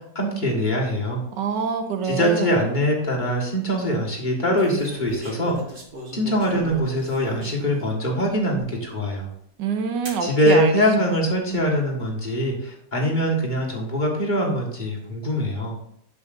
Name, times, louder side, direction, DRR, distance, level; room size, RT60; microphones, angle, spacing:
voice 1, 0.0-1.2 2.0-5.6 6.1-9.3 10.2-15.8, equal, 30° left, -3 dB, 1.7 m, -23 dB
voice 2, 1.4-2.6 9.6-10.7, right 6 dB, 90° right, 6 dB, 1.6 m, -25 dB
sound 1, 4.6-7.9 8.5-8.6 10.1-10.3 11.2-11.6, right 1 dB, 35° right, 1.5 m, -39 dB
8.2 x 7.2 x 2.6 m, 0.74 s
omnidirectional pair, 1.8 m